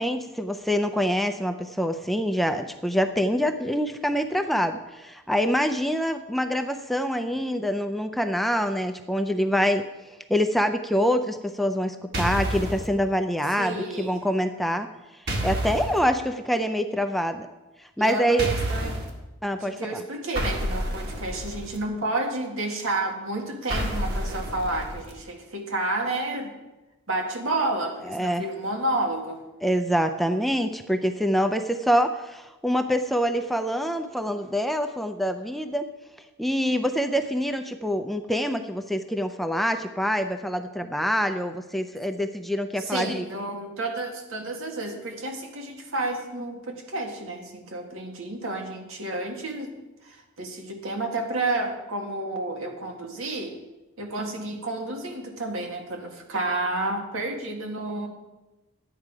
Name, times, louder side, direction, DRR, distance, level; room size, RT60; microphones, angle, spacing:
voice 1, 0.0-9.8 10.3-14.9 15.4-17.5 18.0-18.5 19.4-20.0 28.1-28.4 29.6-35.9 36.4-43.3, equal, ahead, 7 dB, 0.4 m, -25 dB
sound 1, 12.1-12.8 15.3-16.0 18.4-19.1 20.3-21.8 23.7-25.1, right 1 dB, 50° right, 2.0 m, -29 dB
voice 2, 13.6-14.2 18.0-19.0 19.6-26.5 27.1-29.4 42.8-49.7 50.0-53.5 54.0-58.1, right 2 dB, 90° right, 2 dB, 2.0 m, -30 dB
11.5 x 9.1 x 4.8 m, 1.1 s
head